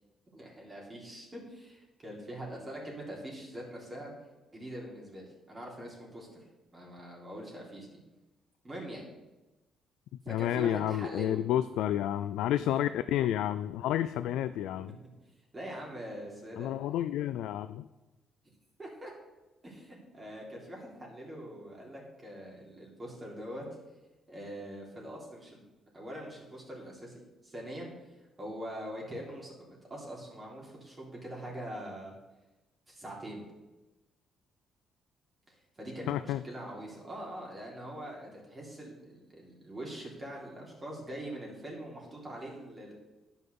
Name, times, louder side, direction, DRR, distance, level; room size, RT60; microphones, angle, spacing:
voice 1, 0.3-4.1 4.5-6.4 6.7-8.0 8.6-9.1 10.2-11.4 12.6-12.7 15.5-16.7 18.8-19.1 19.6-23.6 24.3-25.6 25.9-27.9 28.4-32.1 32.9-33.4 35.5-42.9, right 1 dB, 25° right, -3 dB, 3.4 m, -43 dB
voice 2, 10.3-14.9 16.6-17.9 36.1-36.4, left 12 dB, 90° left, 12 dB, 0.3 m, -30 dB
9.6 x 5.7 x 6.8 m, 1.1 s
cardioid pair, 90°, 0 cm